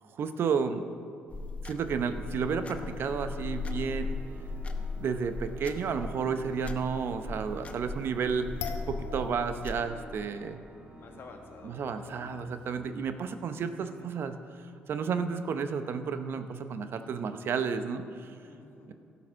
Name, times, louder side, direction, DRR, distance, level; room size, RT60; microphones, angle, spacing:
voice 1, 0.2-0.9 1.7-4.2 5.0-8.5 8.9-10.6 11.6-14.3 14.9-18.0, right 6 dB, 60° right, 9 dB, 0.7 m, -31 dB
sound 1, 1.3-9.9, left 3 dB, 30° left, 0.9 m, -38 dB
Organ, 2.3-13.2, equal, 30° right, 1.3 m, -51 dB
sound 2, 8.6-9.9 10.2-10.3 11.3-11.4 12.1-12.2 12.4-13.2, left 6 dB, 80° left, 0.9 m, -41 dB
voice 2, 10.9-12.2 13.5-13.7 14.0-14.1 18.4-18.9, left 4 dB, 55° left, 3 dB, 1.6 m, -51 dB
11.5 x 7.0 x 6.2 m, 2.6 s
supercardioid pair, 75°, 4 cm